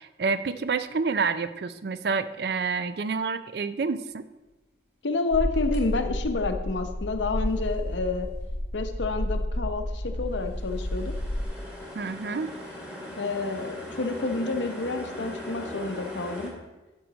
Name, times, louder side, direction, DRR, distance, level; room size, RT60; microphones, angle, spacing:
voice 1, 0.0-4.2 11.9-12.5, right 4 dB, 60° right, 13 dB, 0.4 m, -28 dB
voice 2, 5.0-8.3 8.7-11.1 13.2-16.5, left 3 dB, 85° left, 7 dB, 0.8 m, -29 dB
sound 1, 5.3-11.4, left 1 dB, 45° left, 1.0 m, -31 dB
sound 2, 5.5-5.8 10.3-16.5, left 1 dB, 5° right, 1.6 m, -39 dB
10.5 x 6.5 x 4.0 m, 1.1 s
head